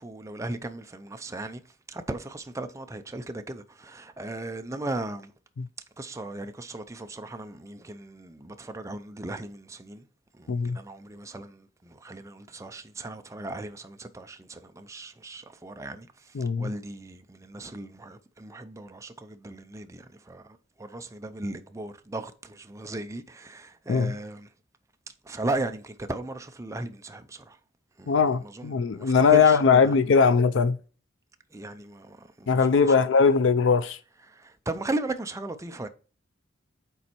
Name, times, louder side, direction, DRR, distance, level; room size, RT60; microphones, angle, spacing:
voice 1, 0.0-1.6 1.9-5.3 6.0-10.1 10.4-24.5 25.2-27.6 28.0-30.0 31.5-32.9 34.3-35.9, right 2 dB, 15° right, 0.5 m, -37 dB
voice 2, 16.3-16.7 23.9-24.2 28.1-30.8 32.5-34.0, left 5 dB, 70° left, 0.5 m, -20 dB
6.9 x 4.3 x 4.4 m
head